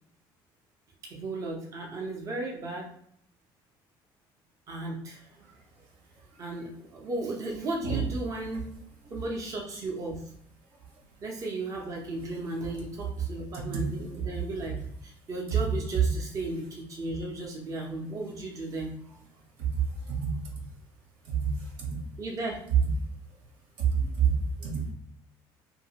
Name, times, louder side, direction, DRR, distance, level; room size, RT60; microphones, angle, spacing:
voice 1, 1.0-2.9 4.7-5.5 6.4-8.7 9.1-10.3 11.2-19.0 22.2-22.7, right 2 dB, 35° right, 0 dB, 0.6 m, -35 dB
voice 2, 23.8-24.3 24.6-24.8, right 7 dB, 80° right, 0 dB, 1.0 m, -27 dB
2.8 x 2.5 x 2.8 m, 0.68 s
cardioid pair, 140°, 9 cm